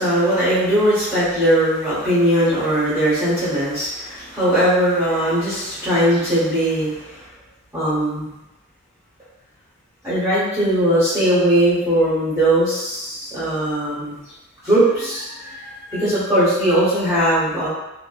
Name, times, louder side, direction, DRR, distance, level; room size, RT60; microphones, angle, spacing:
voice 1, 0.0-7.2 7.7-8.3 10.0-14.2 14.6-17.7, right 1 dB, 15° right, -13 dB, 0.9 m, -19 dB
2.6 x 2.2 x 2.3 m, 0.97 s
head